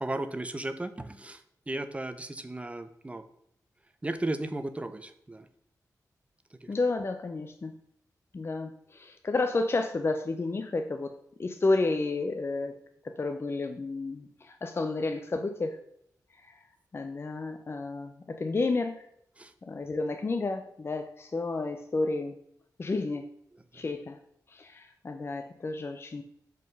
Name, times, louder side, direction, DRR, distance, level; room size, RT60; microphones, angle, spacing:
voice 1, 0.0-3.2 4.0-5.5 6.5-6.7 19.4-19.5 23.7-23.8, right 2 dB, 20° right, 10 dB, 0.5 m, -35 dB
voice 2, 6.7-7.7 8.3-11.1 11.4-12.7 13.0-15.8 16.4-16.6 16.9-19.1 19.6-22.4 22.8-23.3 23.7-24.2 24.5-26.2, left 3 dB, 35° left, 6 dB, 0.5 m, -31 dB
5.3 x 3.9 x 5.2 m, 0.71 s
wide cardioid pair, 85°, 7 cm